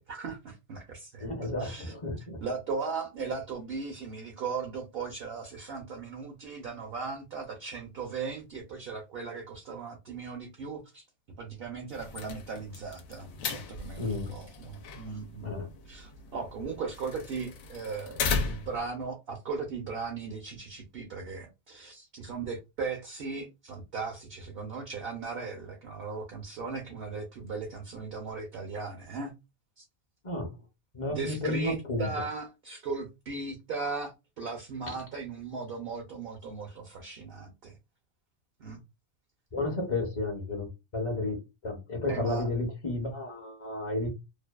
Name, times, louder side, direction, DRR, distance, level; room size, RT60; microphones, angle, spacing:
voice 1, 0.1-11.0 11.4-29.3 29.8-29.9 31.1-37.7 38.6-38.8 42.1-42.5, right 4 dB, 60° right, 0.7 m, -38 dB
voice 2, 1.2-2.4 14.0-14.3 15.4-15.7 30.2-30.5 30.9-32.1 39.5-41.4 41.6-44.1, left 2 dB, 35° left, 0.5 m, -32 dB
sound 1, 11.9-18.9, left 5 dB, 85° left, 1.0 m, -37 dB
2.6 x 2.2 x 2.2 m
omnidirectional pair, 1.4 m